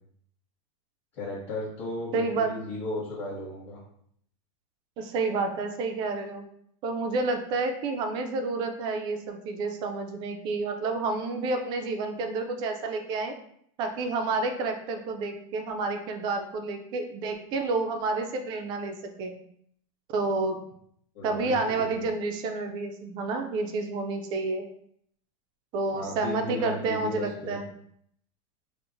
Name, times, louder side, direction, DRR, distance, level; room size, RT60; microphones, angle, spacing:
voice 1, 1.1-3.8 21.1-22.1 25.9-27.6, left 1 dB, 35° left, -9 dB, 1.2 m, -35 dB
voice 2, 2.1-2.5 5.0-6.4 6.8-13.4 13.8-19.4 20.1-20.6 21.2-24.7 25.7-27.7, right 3 dB, 25° right, 5 dB, 0.3 m, -29 dB
4.4 x 2.0 x 2.6 m, 0.67 s
supercardioid pair, 155°, 19 cm